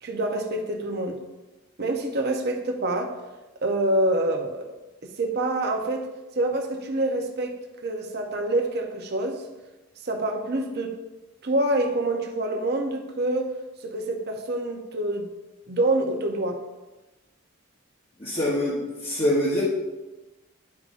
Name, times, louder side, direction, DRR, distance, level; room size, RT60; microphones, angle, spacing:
voice 1, 0.0-1.2 1.8-3.2 3.6-4.7 5.0-6.1 6.4-9.4 10.0-11.0 11.4-13.5 13.8-15.3 15.7-16.6, right 1 dB, 50° right, 0.8 m, -26 dB
voice 2, 18.2-19.6, left 1 dB, 25° left, 1.0 m, -25 dB
11.5 x 4.8 x 2.6 m
head